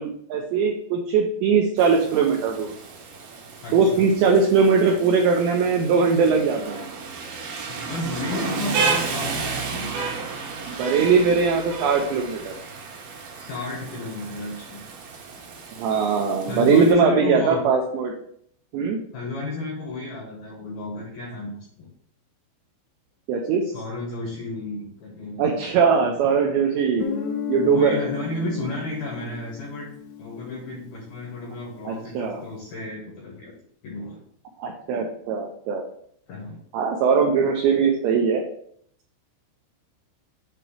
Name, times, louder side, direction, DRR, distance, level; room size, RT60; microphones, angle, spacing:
voice 1, 0.0-2.7 3.7-6.9 10.7-12.6 15.8-18.1 18.7-19.0 23.3-23.6 25.4-27.1 27.5-28.0 31.9-32.4 34.6-35.8 36.7-38.4, right 5 dB, 85° right, 1 dB, 2.5 m, -20 dB
Rain, 1.8-16.9, right 4 dB, 70° right, 2.3 m, -32 dB
voice 2, 3.6-4.1 7.7-9.9 13.3-14.8 16.5-17.6 19.1-21.9 23.7-25.7 27.6-29.9 30.2-33.5 33.8-34.2 36.3-36.6, left 2 dB, 70° left, -3 dB, 2.3 m, -32 dB
Guitar, 27.0-31.6, left 7 dB, 85° left, 3.3 m, -34 dB
8.0 x 3.0 x 4.8 m, 0.66 s
omnidirectional pair, 5.8 m